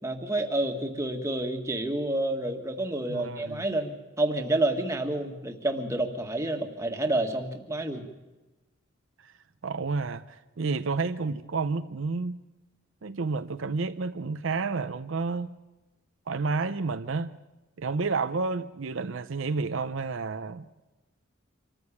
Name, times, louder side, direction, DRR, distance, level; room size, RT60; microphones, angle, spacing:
voice 1, 0.0-3.9 4.2-8.0, right 1 dB, 15° right, 1.7 m, -29 dB
voice 2, 3.1-3.6 9.2-9.3 9.6-12.4 13.0-15.6 16.3-17.3 17.8-20.7, right 4 dB, 70° right, 0.6 m, -30 dB
25.5 x 14.0 x 8.5 m
head